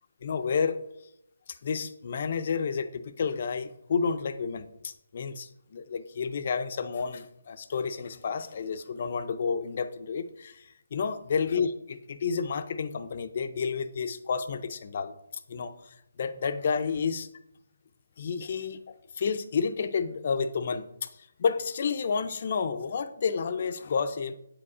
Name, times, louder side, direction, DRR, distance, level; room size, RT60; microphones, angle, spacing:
voice 1, 0.2-0.8 1.6-15.1 15.5-17.3 18.2-18.8 19.2-21.1 21.4-24.4, left 5 dB, 30° left, 10 dB, 0.4 m, -30 dB
8.7 x 4.9 x 4.8 m, 0.79 s
hypercardioid pair, 180°, 0 cm